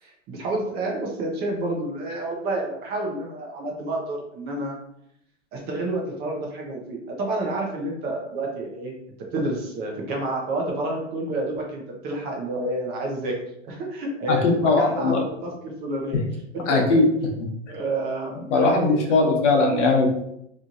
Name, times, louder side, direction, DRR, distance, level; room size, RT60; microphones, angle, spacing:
voice 1, 0.0-4.8 5.5-8.9 9.3-13.3 13.6-16.2 16.5-17.1 17.7-19.3, right 2 dB, 25° right, 0 dB, 0.6 m, -29 dB
voice 2, 14.3-15.2 16.7-17.0 18.5-20.1, left 3 dB, 70° left, 2 dB, 0.9 m, -19 dB
3.0 x 2.5 x 2.4 m, 0.76 s
hypercardioid pair, 130°, 37 cm